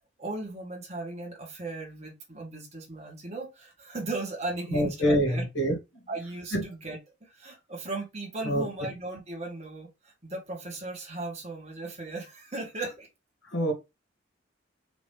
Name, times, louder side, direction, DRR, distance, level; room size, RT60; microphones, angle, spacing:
voice 1, 0.2-5.4 6.1-13.1, right 2 dB, 35° right, 1.7 m, -37 dB
voice 2, 4.7-5.8 6.5-6.6 8.4-8.7 13.4-13.7, equal, 75° left, 2.2 m, -25 dB
5.0 x 2.9 x 3.5 m
head